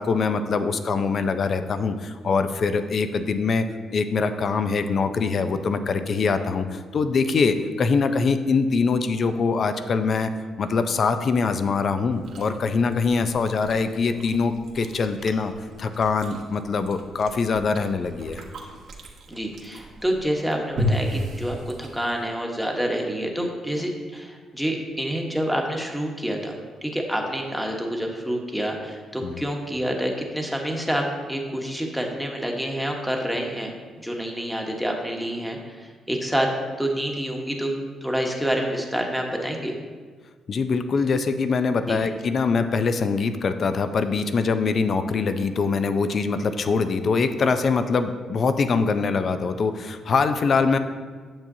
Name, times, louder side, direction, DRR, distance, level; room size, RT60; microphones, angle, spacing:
voice 1, 0.0-3.6 3.9-10.3 10.6-15.5 15.8-18.4 29.2-29.4 40.5-50.8, left 4 dB, 50° left, 10 dB, 0.5 m, -23 dB
Chewing mastication, 12.1-22.3, equal, 65° right, 1.1 m, -34 dB
voice 2, 19.3-26.5 26.8-33.7 34.0-36.5 36.8-39.7 41.8-42.0, equal, ahead, 1 dB, 1.1 m, -27 dB
8.8 x 7.0 x 2.7 m, 1.5 s
cardioid pair, 90°, 0 cm